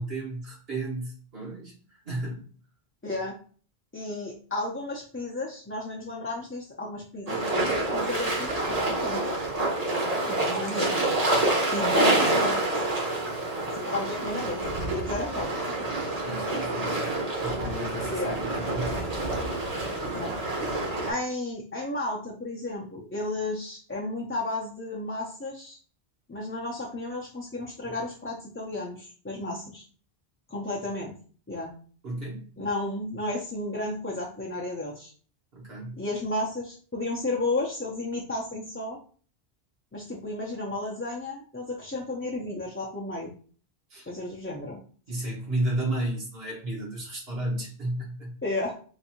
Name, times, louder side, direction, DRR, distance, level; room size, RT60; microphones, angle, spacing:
voice 1, 0.0-2.5 16.2-17.1 17.4-19.0 32.0-32.5 35.5-36.0 43.9-44.1 45.1-48.3, right 1 dB, 70° right, -4 dB, 1.6 m, -33 dB
voice 2, 3.0-3.3 3.9-9.2 10.2-11.0 11.7-12.6 13.7-15.7 18.1-18.4 20.1-20.4 21.1-25.8 26.3-29.8 30.5-31.1 31.5-31.7 32.6-35.1 36.0-39.0 39.9-43.3 44.1-44.8 48.4-48.7, left 2 dB, 20° left, -4 dB, 0.4 m, -33 dB
sound 1, 7.3-21.1, right 2 dB, 40° right, 1.0 m, -27 dB
3.9 x 2.6 x 2.8 m, 0.41 s
omnidirectional pair, 1.1 m